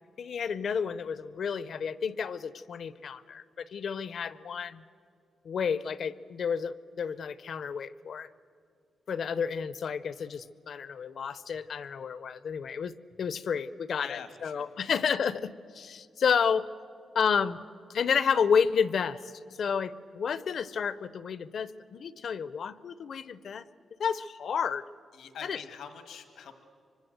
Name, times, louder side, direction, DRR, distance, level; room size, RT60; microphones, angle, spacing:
voice 1, 0.2-4.8 5.4-8.3 9.1-16.7 17.1-17.6 17.9-19.2 19.6-23.7 24.0-24.8 25.4-25.6, left 6 dB, 55° left, 16 dB, 0.6 m, -31 dB
voice 2, 14.0-15.0 25.1-26.5, left 7 dB, 90° left, 8 dB, 1.7 m, -45 dB
25.0 x 24.5 x 7.8 m, 2.4 s
wide cardioid pair, 170°, 0 cm